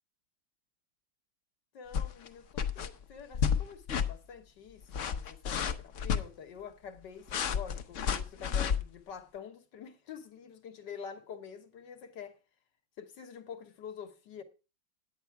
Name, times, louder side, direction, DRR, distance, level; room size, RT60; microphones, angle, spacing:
voice 1, 1.7-12.4 13.0-14.4, left 7 dB, 70° left, 1.8 m, -47 dB
sound 1, 1.9-2.3 2.6-2.9 3.3-3.6 3.9-4.1 4.8-6.2 7.3-8.8, left 7 dB, 55° left, 0.9 m, -30 dB
9.6 x 9.1 x 4.6 m
omnidirectional pair, 2.0 m